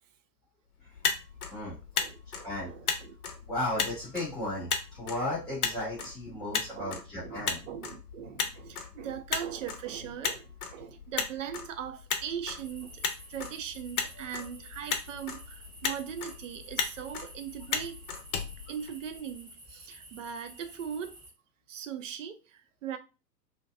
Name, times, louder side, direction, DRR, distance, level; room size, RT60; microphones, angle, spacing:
Motor vehicle (road), 0.8-19.4, left 5 dB, 60° left, 0.6 m, -36 dB
voice 1, 1.9-3.1 6.0-6.1 6.3-6.5 6.7-13.0 13.3-18.0 18.7-21.2 21.7-23.0, right 8 dB, 50° right, 0.5 m, -40 dB
voice 2, 3.5-7.6 14.1-14.2, left 1 dB, ahead, 0.4 m, -35 dB
sound 1, 12.6-21.3, right 1 dB, 15° right, 0.8 m, -51 dB
2.6 x 2.2 x 2.5 m
figure-of-eight pair, 105°, 50 cm